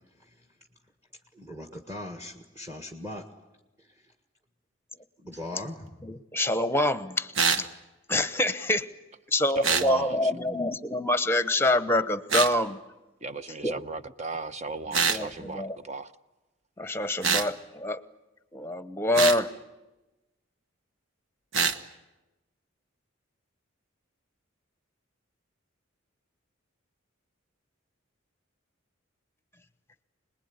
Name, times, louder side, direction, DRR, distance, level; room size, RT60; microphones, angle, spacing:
voice 1, 1.3-3.3 3.8-3.9 5.2-5.8, left 1 dB, 15° right, 1.7 m, -40 dB
voice 2, 6.0-7.7 8.1-8.8 9.3-12.8 13.6-13.8 15.1-15.8 16.8-18.0 18.5-19.5, left 1 dB, 10° left, 1.0 m, -26 dB
sound 1, 7.3-7.7 9.6-9.9 12.3-12.5 14.9-15.2 17.2-17.5 19.1-19.4 21.5-21.8, right 5 dB, 70° right, 1.3 m, -24 dB
voice 3, 9.5-10.3 13.2-16.1, right 3 dB, 35° right, 0.9 m, -36 dB
26.5 x 20.5 x 9.6 m
head